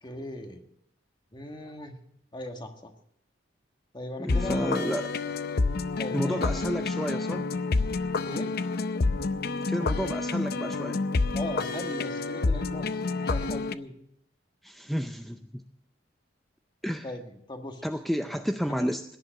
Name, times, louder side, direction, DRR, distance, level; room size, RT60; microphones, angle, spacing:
voice 1, 0.0-0.6 1.3-2.0 2.3-2.9 3.9-5.0 6.0-6.7 8.2-8.6 11.3-13.9 17.0-17.9 18.2-18.4 18.7-18.9, left 1 dB, 25° left, 5 dB, 1.6 m, -38 dB
voice 2, 4.2-5.1 6.1-7.4 9.7-11.0 14.6-15.6 16.8-17.1 17.8-19.0, equal, ahead, 7 dB, 0.5 m, -31 dB
sound 1, 4.3-13.8, left 3 dB, 55° left, 0.6 m, -28 dB
16.5 x 11.0 x 6.5 m, 0.72 s
head